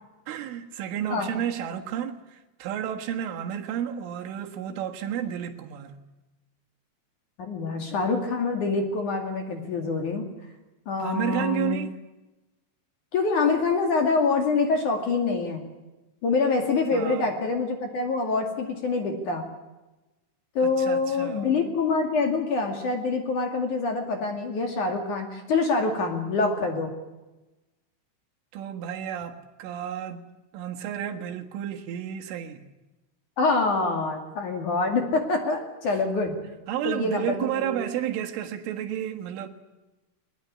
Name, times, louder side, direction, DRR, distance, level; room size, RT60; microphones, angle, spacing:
voice 1, 0.3-6.0 11.0-12.0 16.9-17.3 19.1-19.2 20.6-21.6 28.5-30.3 30.5-32.6 36.7-39.5, right 10 dB, 80° right, 4.1 m, -32 dB
voice 2, 7.4-10.3 10.9-11.8 13.1-15.6 16.2-19.4 20.5-26.9 33.4-36.4 36.8-37.8, left 4 dB, 50° left, 3.2 m, -25 dB
21.0 x 21.0 x 9.8 m
omnidirectional pair, 5.5 m